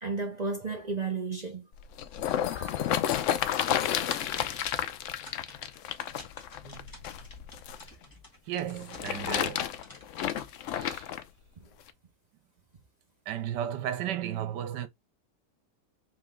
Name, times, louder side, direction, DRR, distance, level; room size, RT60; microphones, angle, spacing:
voice 1, 0.0-1.7 2.5-2.9 6.6-6.8, right 4 dB, 40° right, 0.6 m, -34 dB
sound 1, 1.7-7.8 8.7-11.2 11.9-12.0, left 10 dB, 80° left, 0.6 m, -31 dB
sound 2, 4.2-9.4 9.8-10.9, left 1 dB, 15° left, 1.3 m, -51 dB
voice 2, 8.5-9.8 10.7-11.1 13.3-14.9, right 10 dB, 80° right, 1.4 m, -34 dB
3.6 x 3.0 x 3.7 m
omnidirectional pair, 1.8 m